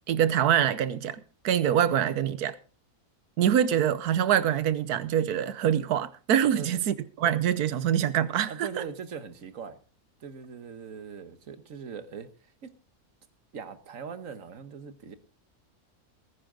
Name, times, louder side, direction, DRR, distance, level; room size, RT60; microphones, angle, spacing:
voice 1, 0.1-2.5 3.4-8.8, right 9 dB, 80° right, 1.3 m, -25 dB
voice 2, 8.5-9.8 10.2-12.7 13.5-15.2, right 6 dB, 60° right, 1.5 m, -41 dB
20.0 x 10.0 x 3.8 m
omnidirectional pair, 1.6 m